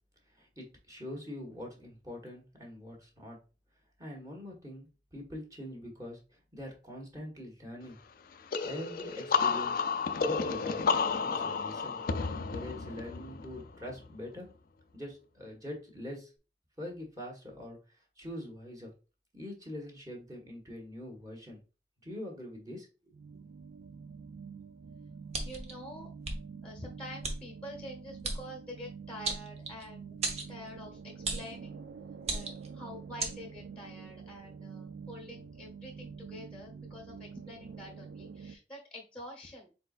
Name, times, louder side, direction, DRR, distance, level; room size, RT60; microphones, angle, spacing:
voice 1, 0.3-3.4 4.0-6.2 6.5-8.0 8.6-9.8 10.2-10.8 11.1-12.0 12.5-14.5 14.9-16.3 16.8-17.8 18.2-18.9 19.3-21.6 22.0-23.1, left 1 dB, 20° right, 0 dB, 1.5 m, -43 dB
sound 1, 8.5-14.1, left 5 dB, 55° left, 0.4 m, -31 dB
sound 2, 23.1-38.6, right 6 dB, 65° right, 0.4 m, -47 dB
sound 3, 25.3-25.7 26.2-26.4 27.2-27.4 28.2-28.4 29.2-29.8 30.2-30.5 31.2-31.5 32.2-32.7 33.2-33.4, right 3 dB, 35° right, 0.9 m, -34 dB
voice 2, 25.4-26.1 26.6-30.2 30.5-31.9 32.2-39.7, left 1 dB, 5° left, 0 dB, 1.1 m, -47 dB
4.4 x 4.1 x 2.5 m, 0.32 s
head